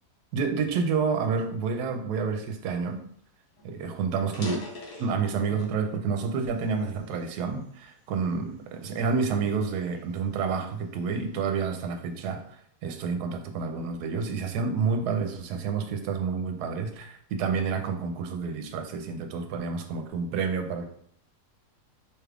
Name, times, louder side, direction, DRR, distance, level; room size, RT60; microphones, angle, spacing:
voice 1, 0.3-3.0 3.6-4.6 5.0-12.4 12.8-20.9, right 5 dB, 85° right, 6 dB, 1.2 m, -29 dB
Opening a ramune bottle, 3.1-3.2 3.5-3.7 4.2-5.8 6.3-7.6 8.2-8.5 9.1-11.1, left 2 dB, 75° left, 1.6 m, -41 dB
4.9 x 3.3 x 2.4 m, 0.66 s
omnidirectional pair, 1.7 m